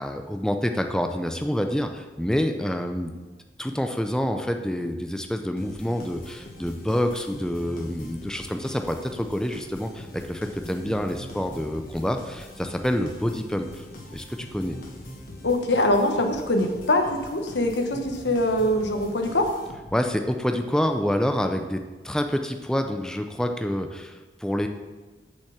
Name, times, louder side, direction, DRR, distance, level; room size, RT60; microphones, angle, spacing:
voice 1, 0.0-3.1 3.6-13.9 14.1-14.8 19.9-24.7, equal, 5° left, 5 dB, 0.5 m, -27 dB
sound 1, 5.6-20.1, left 1 dB, 55° left, 1.5 m, -43 dB
voice 2, 15.4-19.5, left 1 dB, 80° left, 5 dB, 1.2 m, -23 dB
7.0 x 5.5 x 7.1 m, 1.3 s
head